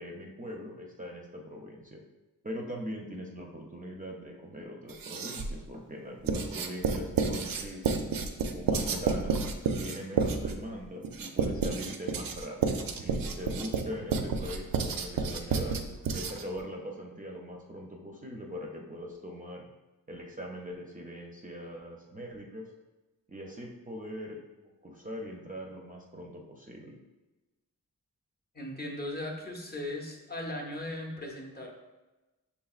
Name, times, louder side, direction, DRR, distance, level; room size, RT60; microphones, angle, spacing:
voice 1, 0.0-2.0 2.4-8.1 8.5-9.4 9.8-15.8 16.1-19.6 20.1-22.7 23.3-24.4 24.8-27.0, equal, 25° right, -1 dB, 0.4 m, -41 dB
Writing, 4.9-5.6 6.3-16.6, right 5 dB, 80° right, 0.5 m, -30 dB
voice 2, 28.5-31.7, left 1 dB, 30° left, 0 dB, 0.6 m, -38 dB
5.8 x 3.5 x 2.4 m, 1.1 s
wide cardioid pair, 135°, 34 cm